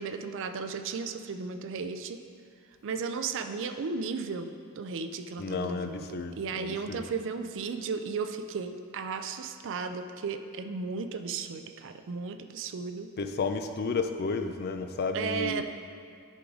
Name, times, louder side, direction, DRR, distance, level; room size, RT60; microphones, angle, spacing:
voice 1, 0.0-2.2 2.8-4.5 4.7-13.1 15.1-15.6, right 5 dB, 60° right, 8 dB, 0.4 m, -35 dB
voice 2, 5.4-7.1 13.2-15.6, left 4 dB, 45° left, 7 dB, 0.4 m, -32 dB
9.9 x 3.8 x 4.9 m, 2.3 s
head